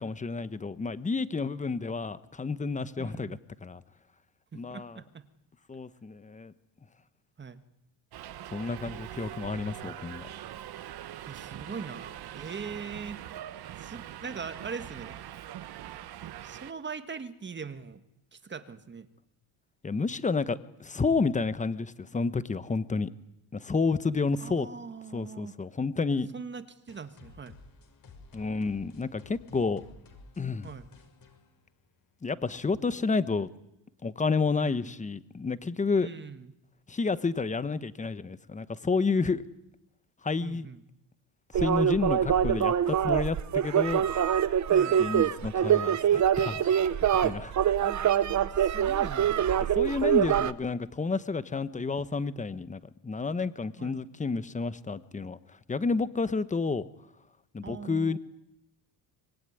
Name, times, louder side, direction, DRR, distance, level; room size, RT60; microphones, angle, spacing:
voice 1, 0.0-3.8 4.5-5.0 5.7-6.5 8.5-10.3 19.8-23.1 23.5-24.7 25.1-26.3 28.3-29.8 30.4-30.7 32.2-33.5 34.0-36.1 36.9-39.4 40.2-40.7 41.5-44.1 45.0-46.8 47.1-47.5 49.7-55.4 55.7-56.9 57.5-58.2, left 4 dB, 15° left, 14 dB, 1.1 m, -30 dB
voice 2, 3.0-3.4 4.5-5.2 7.4-7.6 11.3-13.2 13.8-15.2 15.9-16.0 16.4-18.0 18.3-19.1 24.4-25.5 26.3-27.6 30.6-30.9 34.6-34.9 36.0-36.5 40.4-40.8 44.7-45.0 47.8-49.6 53.8-54.0 57.6-58.2, right 5 dB, 25° right, 10 dB, 1.7 m, -41 dB
Subway metro underground, 8.1-16.7, right 12 dB, 55° right, 1.3 m, -42 dB
sound 1, 26.9-32.3, left 3 dB, 45° left, 5.8 m, -53 dB
sound 2, 41.5-50.5, right 9 dB, 40° right, 1.0 m, -24 dB
25.0 x 22.0 x 9.8 m, 0.87 s
cardioid pair, 130°, 45 cm